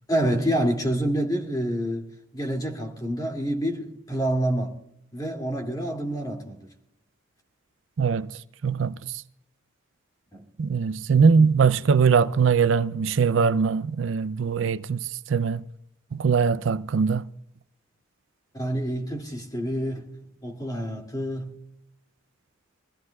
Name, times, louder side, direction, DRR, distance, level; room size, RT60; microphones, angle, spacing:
voice 1, 0.1-2.1 2.3-4.7 5.1-6.7 10.3-10.4 18.5-20.1 20.4-21.5, right 1 dB, 20° left, 2.4 m, -27 dB
voice 2, 8.0-8.3 8.6-9.1 10.6-15.6 16.1-17.3, right 5 dB, 75° right, 0.4 m, -21 dB
24.0 x 16.0 x 2.4 m
head